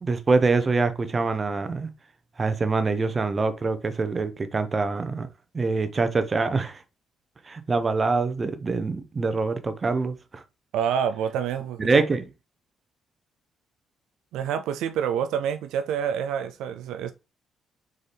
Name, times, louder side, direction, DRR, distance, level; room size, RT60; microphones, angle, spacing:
voice 1, 0.0-1.9 2.4-5.3 5.5-6.8 7.5-10.4 11.8-12.2, right 3 dB, 30° right, 0.7 m, -25 dB
voice 2, 10.7-12.0 14.3-17.1, right 8 dB, 90° right, 0.3 m, -27 dB
4.0 x 3.8 x 3.3 m
cardioid pair, 90°, 0 cm